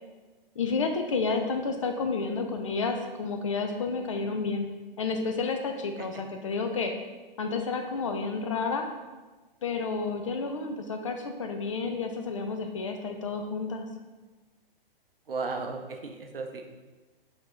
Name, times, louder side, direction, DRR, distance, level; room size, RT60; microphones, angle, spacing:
voice 1, 0.6-4.7 5.0-6.9 7.4-8.9 9.6-13.9, left 4 dB, 35° left, 4 dB, 0.4 m, -30 dB
voice 2, 15.3-16.6, right 4 dB, 70° right, 4 dB, 0.7 m, -34 dB
3.9 x 2.6 x 4.5 m, 1.3 s
figure-of-eight pair, 120°, 29 cm